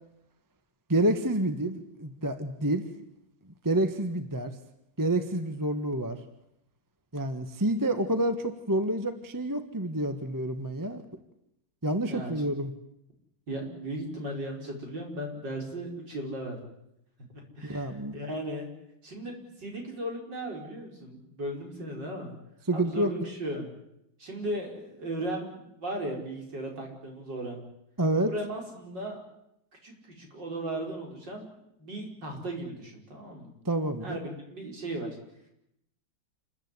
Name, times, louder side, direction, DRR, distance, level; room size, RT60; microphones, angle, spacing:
voice 1, 0.9-2.9 3.6-4.5 5.0-6.2 7.1-11.0 11.8-12.7 17.6-18.2 22.7-23.1 28.0-28.3 33.6-34.2, right 1 dB, 10° right, 8 dB, 1.4 m, -28 dB
voice 2, 13.5-16.6 17.3-18.7 19.0-22.3 22.7-23.7 24.2-27.6 28.2-29.2 29.8-31.5 31.8-33.5 34.0-35.1, right 1 dB, 55° right, 1 dB, 5.7 m, -36 dB
28.5 x 14.5 x 9.8 m, 0.82 s
omnidirectional pair, 2.2 m